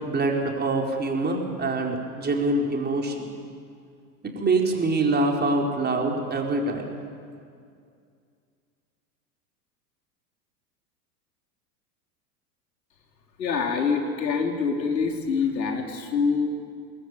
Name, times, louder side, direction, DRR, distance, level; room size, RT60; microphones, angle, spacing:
voice 1, 0.0-3.3 4.3-6.9, right 2 dB, 20° right, 1 dB, 4.6 m, -25 dB
voice 2, 13.4-16.5, left 5 dB, 80° left, 3 dB, 3.8 m, -25 dB
26.0 x 21.0 x 9.7 m, 2.3 s
hypercardioid pair, 95°, 50 cm